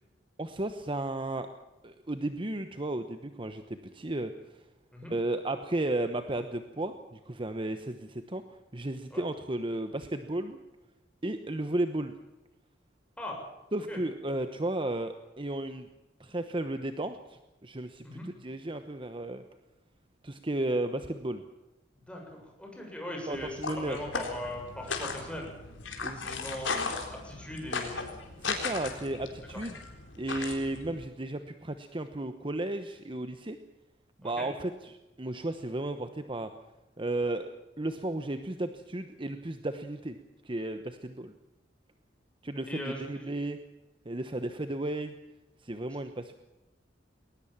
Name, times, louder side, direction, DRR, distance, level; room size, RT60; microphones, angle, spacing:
voice 1, 0.4-1.5 1.8-3.6 3.9-4.3 5.1-10.6 11.2-12.1 13.7-15.9 16.2-18.1 18.4-19.4 20.2-21.4 23.3-24.0 26.0-26.2 28.4-29.8 30.2-33.6 34.2-36.5 37.0-40.2 40.4-41.3 42.4-43.6 44.0-45.1 45.6-46.3, right 1 dB, 30° right, 9 dB, 1.1 m, -34 dB
voice 2, 22.0-25.5 26.2-28.1 34.2-34.5 42.7-43.3, left 1 dB, 5° left, 0 dB, 7.1 m, -40 dB
sound 1, 23.3-31.0, left 4 dB, 85° left, 4.0 m, -37 dB
20.5 x 19.5 x 7.4 m, 1.0 s
head